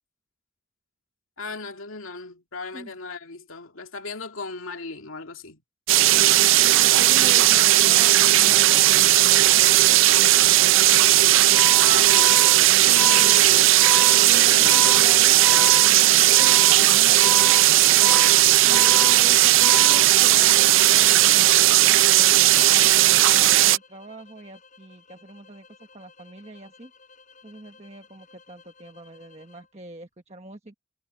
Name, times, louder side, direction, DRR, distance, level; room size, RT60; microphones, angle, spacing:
voice 1, 1.4-5.6 10.8-12.4 12.8-13.7 14.3-14.8, left 4 dB, 75° left, 2.4 m, -36 dB
sound 1, 5.9-23.8, right 14 dB, 65° right, 0.5 m, -16 dB
voice 2, 6.6-9.7 11.5-11.6 14.2-15.4 15.8-18.1 18.6-22.3 22.8-26.9 27.4-30.7, right 2 dB, 30° right, 1.3 m, -42 dB
Organ, 11.4-20.6, left 2 dB, 10° left, 0.5 m, -32 dB
sound 2, 22.9-29.7, left 4 dB, 35° left, 7.7 m, -54 dB
head